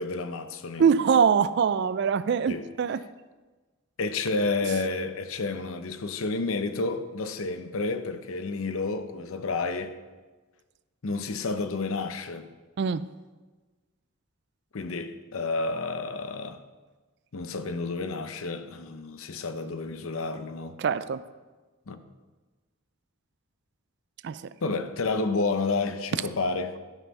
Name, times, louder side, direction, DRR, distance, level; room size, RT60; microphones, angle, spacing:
voice 1, 0.0-0.9 2.5-2.7 4.0-10.0 11.0-12.5 14.7-16.6 17.3-20.8 21.9-22.0 24.6-26.8, left 3 dB, 70° left, 0.7 m, -30 dB
voice 2, 0.8-3.0 12.8-13.1 20.8-21.2 24.2-24.4, right 6 dB, 50° right, 0.3 m, -23 dB
11.5 x 5.6 x 5.3 m
head